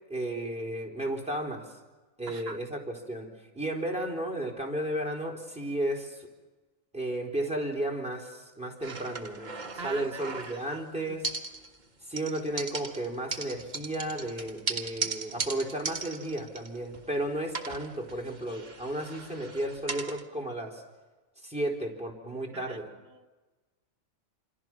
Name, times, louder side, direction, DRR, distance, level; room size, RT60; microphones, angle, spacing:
voice 1, 0.1-1.7 2.2-3.3 3.5-6.3 6.9-11.3 12.1-20.8 21.4-22.9, right 1 dB, 5° right, 0 dB, 3.9 m, -33 dB
voice 2, 2.3-2.6 9.8-10.8 11.0-11.2 15.0-15.5 22.5-22.8 23.1-23.3, right 5 dB, 50° right, 6 dB, 1.2 m, -43 dB
sound 1, 8.8-10.8 11.2-11.9 12.2-17.2 17.5-20.2, right 4 dB, 35° right, 1.4 m, -38 dB
27.0 x 26.5 x 6.1 m, 1.2 s
omnidirectional pair, 1.4 m